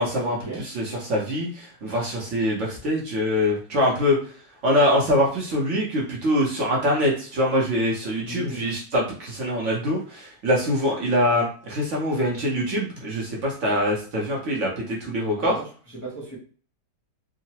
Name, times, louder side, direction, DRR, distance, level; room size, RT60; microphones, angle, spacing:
voice 1, 0.0-4.2 4.6-15.6, equal, 55° right, -3 dB, 0.9 m, -24 dB
voice 2, 8.2-8.7 15.3-16.4, right 2 dB, 30° left, -7 dB, 0.3 m, -36 dB
3.7 x 2.0 x 2.8 m, 0.43 s
omnidirectional pair, 1.8 m